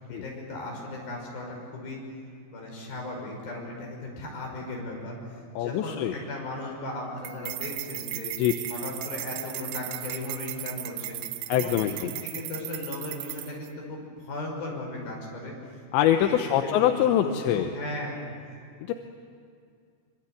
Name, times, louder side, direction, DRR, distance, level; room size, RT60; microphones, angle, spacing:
voice 1, 0.0-2.0 2.5-5.2 5.6-8.3 8.7-11.2 11.6-11.9 12.2-15.5 16.0-16.3 16.6-18.2, left 2 dB, 55° left, 0 dB, 7.5 m, -37 dB
voice 2, 5.6-6.1 8.4-8.5 11.5-12.1 15.9-17.7 18.9-19.0, left 11 dB, 85° left, 6 dB, 3.2 m, -24 dB
sound 1, 7.3-13.7, right 14 dB, 80° right, 3.0 m, -36 dB
25.0 x 24.5 x 9.3 m, 2.3 s
omnidirectional pair, 5.1 m